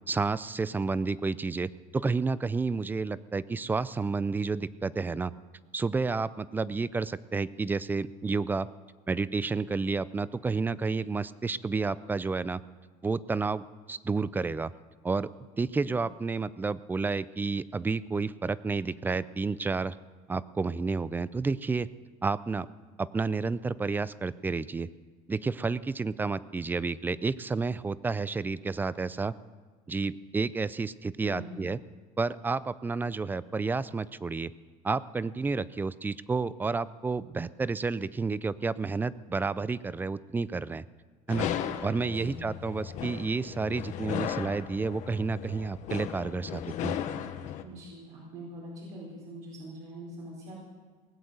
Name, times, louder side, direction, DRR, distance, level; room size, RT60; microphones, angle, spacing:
voice 1, 0.1-5.3 5.7-8.7 9.1-12.6 13.0-14.7 15.0-15.3 15.6-20.0 20.3-21.9 22.2-22.7 23.0-24.9 25.3-29.3 29.9-31.8 32.2-34.5 34.8-40.8 41.3-41.5 41.8-47.0, right 4 dB, 15° right, 18 dB, 0.4 m, -30 dB
voice 2, 31.2-31.6 42.0-42.4 47.6-50.6, right 1 dB, 65° right, -5 dB, 4.4 m, -43 dB
sound 1, 41.3-47.6, left 10 dB, 60° left, 1.1 m, -36 dB
19.0 x 7.9 x 7.8 m, 1.5 s
cardioid pair, 125°, 14 cm